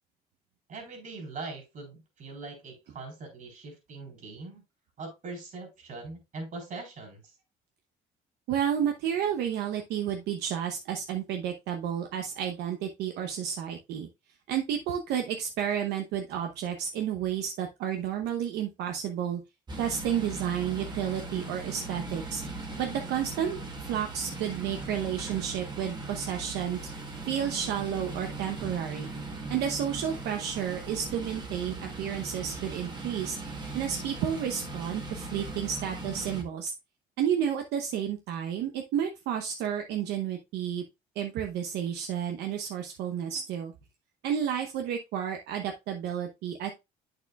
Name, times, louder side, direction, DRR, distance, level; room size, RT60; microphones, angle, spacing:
voice 1, 0.7-4.6 5.0-7.2, right 3 dB, 50° right, 3 dB, 3.8 m, -41 dB
voice 2, 8.5-14.1 14.5-19.4 19.8-22.4 22.8-26.8 27.2-29.1 29.5-36.7 37.2-40.8 41.2-43.7 44.2-46.7, right 9 dB, 80° right, 5 dB, 0.8 m, -31 dB
sound 1, 19.7-36.4, right 3 dB, 25° right, 1.4 m, -39 dB
8.5 x 6.6 x 2.3 m, 0.24 s
cardioid pair, 110°, 17 cm